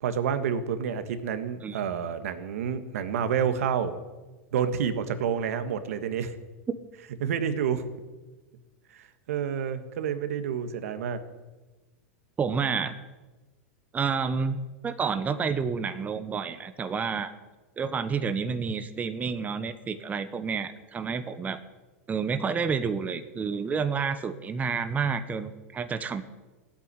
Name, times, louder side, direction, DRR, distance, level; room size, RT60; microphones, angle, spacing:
voice 1, 0.0-4.0 4.5-6.3 7.2-7.9 9.0-11.2, right 7 dB, 75° right, 10 dB, 1.7 m, -29 dB
voice 2, 12.4-12.9 13.9-14.6 14.8-17.3 17.8-21.6 22.1-26.2, right 5 dB, 20° right, 10 dB, 1.1 m, -29 dB
16.0 x 8.7 x 9.9 m, 1.2 s
hypercardioid pair, 115°, 8 cm